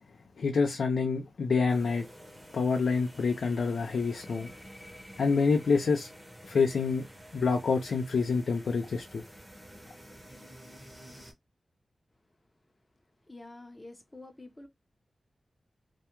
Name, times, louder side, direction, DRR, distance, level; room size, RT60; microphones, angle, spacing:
voice 1, 0.4-2.1 2.5-4.5 5.2-6.1 6.4-7.1 7.3-9.2, left 4 dB, 90° left, 0.4 m, -27 dB
sound 1, 1.7-11.3, equal, 10° right, 0.8 m, -50 dB
voice 2, 13.3-14.7, left 2 dB, 20° left, 0.6 m, -48 dB
2.2 x 2.2 x 2.8 m
wide cardioid pair, 110°, 0 cm